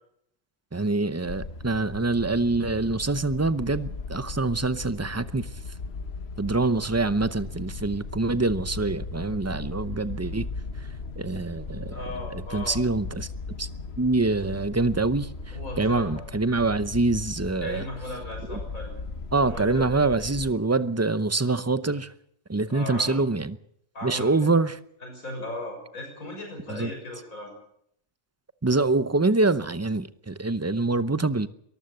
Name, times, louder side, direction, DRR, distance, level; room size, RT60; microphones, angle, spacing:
voice 1, 0.7-5.5 6.4-10.5 11.2-12.0 12.3-13.3 13.6-13.7 14.0-17.8 18.5-18.6 19.3-22.1 22.5-23.6 24.0-24.8 26.7-26.9 28.6-31.5, right 3 dB, 15° right, 0.5 m, -25 dB
sound 1, 1.2-20.5, left 4 dB, 50° left, 1.3 m, -37 dB
voice 2, 11.9-12.8 15.5-16.2 17.6-18.9 19.4-19.9 20.2-20.3 22.7-23.2 23.9-24.5 25.0-27.5, left 1 dB, 75° left, 6.8 m, -37 dB
23.0 x 14.5 x 8.0 m
omnidirectional pair, 1.4 m